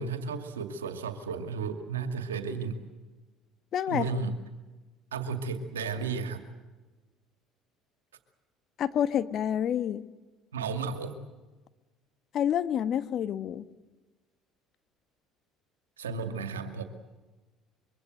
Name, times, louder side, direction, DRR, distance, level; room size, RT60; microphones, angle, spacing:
voice 1, 0.0-2.8 3.9-4.3 5.1-6.4 10.5-11.2 16.0-16.8, right 5 dB, 90° right, 8 dB, 2.3 m, -33 dB
voice 2, 3.7-4.1 8.8-10.0 12.3-13.6, left 9 dB, 50° left, 12 dB, 1.4 m, -28 dB
24.5 x 24.0 x 7.9 m, 1.2 s
hypercardioid pair, 65°, 0 cm